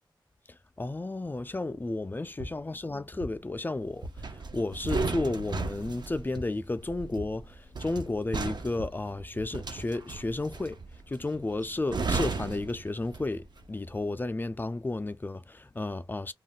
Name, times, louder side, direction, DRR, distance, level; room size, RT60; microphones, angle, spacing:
voice 1, 0.5-10.8 11.1-16.3, left 2 dB, 25° left, 0.4 m, -33 dB
sound 1, 2.1-9.8, right 1 dB, 80° right, 1.0 m, -45 dB
sound 2, 4.2-13.5 13.8-14.1, right 4 dB, 60° right, 0.5 m, -35 dB
2.4 x 2.1 x 3.6 m
cardioid pair, 55°, 9 cm